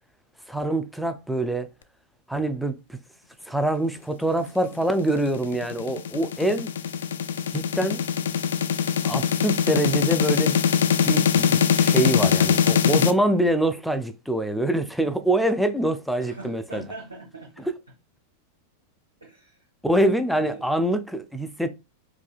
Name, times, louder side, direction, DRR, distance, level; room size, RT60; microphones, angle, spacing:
voice 1, 0.5-1.7 2.3-3.0 3.5-6.7 7.5-8.0 9.0-10.6 11.1-16.8 17.6-17.7 19.8-21.7, right 1 dB, ahead, 0.4 m, -25 dB
sound 1, 5.0-13.1, left 7 dB, 60° left, 0.3 m, -22 dB
voice 2, 16.2-17.7 19.2-19.6 20.3-20.6, right 2 dB, 85° right, 1.0 m, -40 dB
4.7 x 2.6 x 2.4 m
figure-of-eight pair, 90°, 0 cm